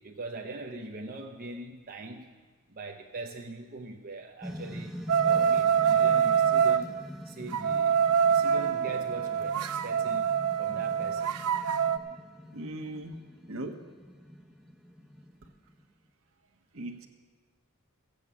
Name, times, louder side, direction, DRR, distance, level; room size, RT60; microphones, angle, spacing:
voice 1, 0.0-2.3 2.7-4.9 5.2-7.0 7.2-8.0 8.3-11.4, right 2 dB, 40° right, 1 dB, 0.8 m, -42 dB
sound 1, 4.4-15.8, equal, ahead, 0.7 m, -44 dB
sound 2, 5.1-6.8 7.5-12.0, right 7 dB, 85° right, 0.6 m, -25 dB
voice 2, 12.5-13.2 13.4-13.8 16.7-17.1, right 1 dB, 65° right, 5 dB, 1.3 m, -38 dB
15.0 x 7.9 x 8.3 m, 1.5 s
head